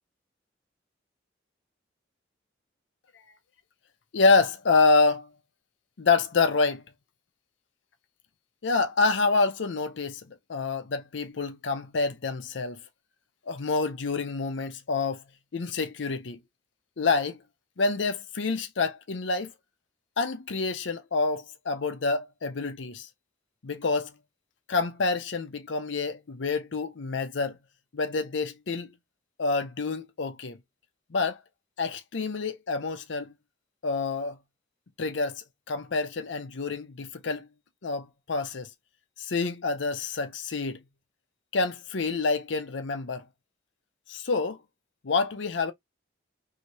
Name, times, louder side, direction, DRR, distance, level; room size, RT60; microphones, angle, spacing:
voice 1, 4.1-5.3 6.0-6.8 8.6-10.2 10.5-12.8 13.5-15.2 15.5-16.4 17.0-17.4 17.8-19.5 20.2-23.1 23.6-24.1 24.7-27.6 27.9-28.9 29.4-30.6 31.1-31.4 31.8-33.3 33.8-34.4 35.0-37.5 37.8-38.7 39.2-40.8 41.5-43.2 44.1-44.6 45.0-45.7, left 4 dB, 80° left, 0.6 m, -27 dB
3.1 x 2.8 x 2.7 m
head